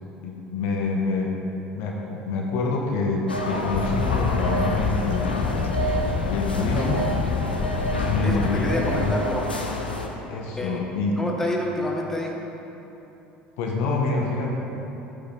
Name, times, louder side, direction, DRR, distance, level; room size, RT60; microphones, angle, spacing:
voice 1, 0.2-1.4 1.7-5.7 6.3-7.1 8.0-9.2 10.3-11.2 13.6-14.5, left 3 dB, 55° left, 0 dB, 1.3 m, -26 dB
sound 1, 3.3-10.1, equal, 85° left, 0.9 m, -29 dB
sound 2, 3.7-9.1, left 6 dB, 40° left, 0.5 m, -27 dB
voice 2, 8.2-9.5 10.6-10.8 11.2-12.3, left 1 dB, 10° left, -1 dB, 1.5 m, -28 dB
13.0 x 9.0 x 3.5 m, 3.0 s
figure-of-eight pair, 65°, 5 cm